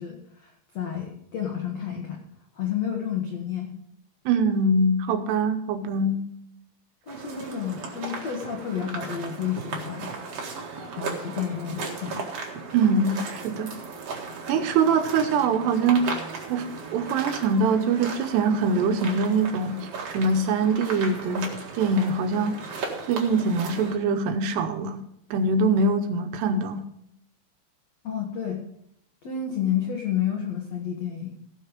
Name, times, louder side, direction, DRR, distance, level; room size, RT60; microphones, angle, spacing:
voice 1, 0.0-2.2 2.5-3.7 7.1-10.1 11.0-12.2 28.0-28.6 29.2-31.4, left 9 dB, 90° left, 1 dB, 1.4 m, -30 dB
voice 2, 4.3-6.2 12.7-13.8 14.5-16.1 16.5-19.8 20.1-21.5 21.8-22.6 23.1-25.0 25.3-26.8, right 3 dB, 75° right, 7 dB, 2.7 m, -23 dB
sound 1, 7.1-24.0, right 4 dB, 50° right, 2.0 m, -36 dB
17.0 x 6.5 x 5.0 m, 0.73 s
omnidirectional pair, 5.3 m